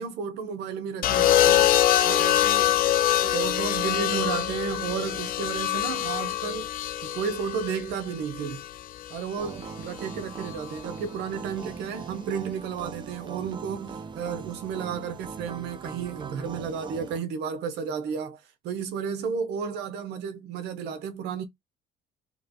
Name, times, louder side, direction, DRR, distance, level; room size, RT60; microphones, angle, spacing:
voice 1, 0.0-1.7 2.0-6.7 7.0-8.6 9.1-21.4, right 6 dB, 85° right, 0.9 m, -33 dB
sound 1, 1.0-9.2 10.4-10.8, left 12 dB, 60° left, 0.5 m, -24 dB
sound 2, 9.4-17.2, right 6 dB, 30° right, 0.5 m, -40 dB
3.1 x 3.0 x 3.9 m
cardioid pair, 110°, 17 cm